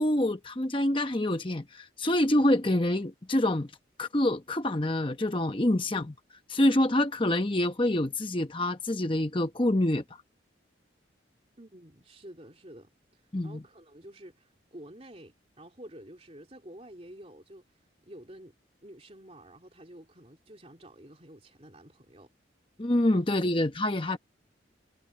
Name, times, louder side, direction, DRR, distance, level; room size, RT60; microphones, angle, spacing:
voice 1, 0.0-3.7 4.0-6.1 6.5-10.0 13.3-13.6 22.8-24.2, left 1 dB, 25° left, 1.0 m, -26 dB
voice 2, 11.6-17.6 18.1-18.5 18.8-22.3 23.1-23.4 24.0-24.2, right 1 dB, 30° right, 3.3 m, -50 dB
head